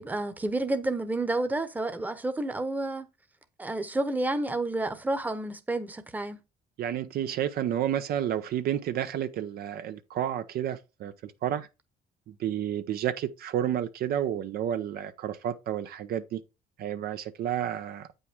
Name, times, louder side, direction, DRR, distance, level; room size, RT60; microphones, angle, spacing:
voice 1, 0.0-3.1 3.6-6.4, right 2 dB, 10° right, 1.0 m, -30 dB
voice 2, 6.8-11.7 12.3-16.4 16.8-18.1, right 10 dB, 65° right, 0.7 m, -31 dB
8.2 x 5.5 x 3.6 m
cardioid pair, 110°, 17 cm